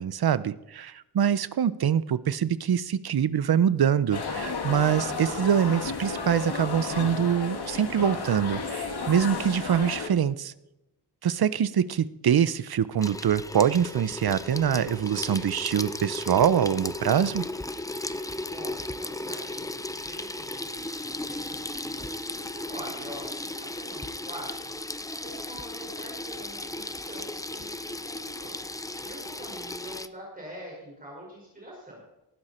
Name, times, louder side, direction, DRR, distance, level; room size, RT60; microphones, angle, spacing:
voice 1, 0.0-10.5 11.2-17.4, right 8 dB, 65° right, 16 dB, 0.8 m, -24 dB
sound 1, 4.1-10.1, left 4 dB, 65° left, 2.5 m, -32 dB
Water tap faucet / Sink (filling or washing), 13.0-30.1, left 2 dB, 10° left, 0.5 m, -36 dB
voice 2, 18.5-32.0, equal, 20° right, -4 dB, 5.5 m, -45 dB
18.5 x 15.0 x 4.4 m, 0.91 s
wide cardioid pair, 155°, 41 cm